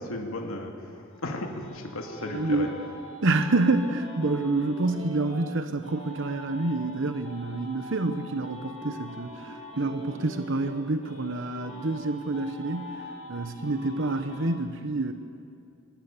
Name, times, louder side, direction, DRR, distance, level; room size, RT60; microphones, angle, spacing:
voice 1, 0.0-2.7, left 1 dB, 85° left, 2 dB, 2.6 m, -35 dB
sound 1, 1.1-5.5 5.8-10.7 11.0-14.5, equal, 30° left, 5.9 m, -43 dB
voice 2, 2.3-2.7 3.2-13.0 13.3-15.1, right 2 dB, 65° right, 8 dB, 1.0 m, -28 dB
26.0 x 20.5 x 7.3 m, 2.6 s
head